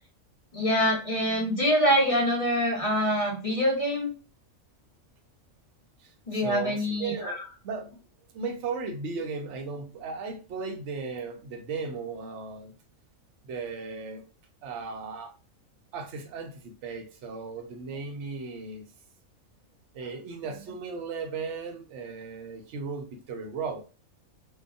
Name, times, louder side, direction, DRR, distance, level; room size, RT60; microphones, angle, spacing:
voice 1, 0.5-4.1 6.3-7.4, equal, 30° left, 0.9 m, -25 dB
voice 2, 6.0-7.4 7.6-8.0 8.3-12.7 13.4-14.2 14.6-15.3 15.9-18.9 19.9-23.8, right 4 dB, 65° right, 0.9 m, -36 dB
2.8 x 2.2 x 2.4 m
omnidirectional pair, 1.4 m